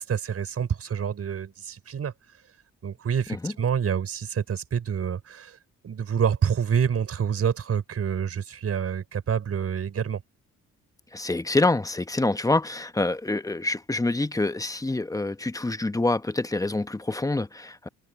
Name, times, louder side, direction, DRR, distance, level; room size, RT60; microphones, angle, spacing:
voice 1, 0.0-2.1 2.8-5.6 5.8-10.2, right 7 dB, 55° right, 5.1 m, -27 dB
voice 2, 11.1-17.9, left 2 dB, 10° left, 0.9 m, -26 dB
cardioid pair, 90°, 30 cm